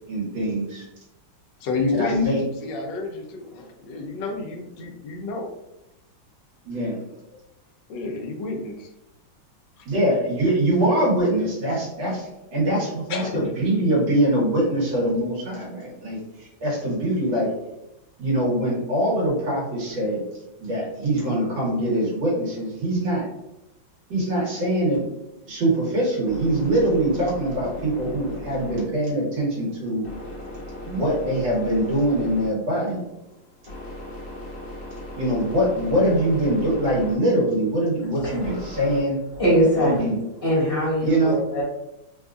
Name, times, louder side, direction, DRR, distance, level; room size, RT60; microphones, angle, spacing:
voice 1, 0.1-0.8 1.9-2.4 6.7-7.0 9.9-17.5 18.2-20.2 20.6-23.2 24.1-25.0 25.5-30.0 30.9-33.0 35.2-39.2 39.8-40.2 41.0-41.4, right 1 dB, 85° right, -5 dB, 2.0 m, -23 dB
voice 2, 1.6-5.5 7.9-8.9 9.8-9.9 13.1-13.5, left 3 dB, 75° left, 2 dB, 1.2 m, -30 dB
sound 1, 25.4-39.0, left 1 dB, 35° left, 1.0 m, -39 dB
voice 3, 38.2-38.5 38.8-39.0 39.3-40.0 40.4-41.6, equal, 20° left, -9 dB, 1.2 m, -22 dB
4.0 x 2.3 x 2.4 m, 0.90 s
omnidirectional pair, 2.0 m